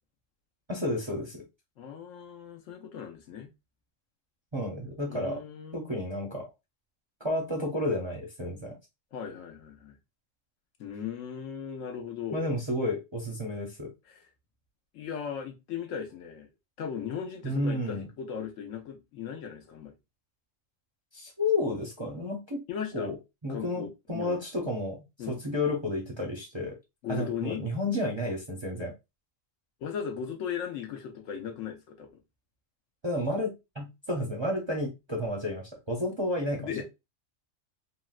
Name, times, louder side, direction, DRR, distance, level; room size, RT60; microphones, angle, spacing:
voice 1, 0.7-1.4 4.5-5.4 5.7-6.5 7.2-8.7 12.3-13.9 17.4-18.1 21.1-22.6 22.9-23.2 23.4-26.7 27.1-28.9 33.0-36.7, left 1 dB, 30° right, 0.5 m, -31 dB
voice 2, 1.8-3.5 5.1-5.8 9.1-10.0 10.8-12.5 14.1-14.2 14.9-16.5 16.8-19.9 22.7-23.1 23.5-24.4 25.2-25.4 27.0-27.6 29.8-32.2 36.6-36.8, left 7 dB, 75° left, 1.1 m, -37 dB
3.7 x 2.1 x 2.3 m
omnidirectional pair, 1.3 m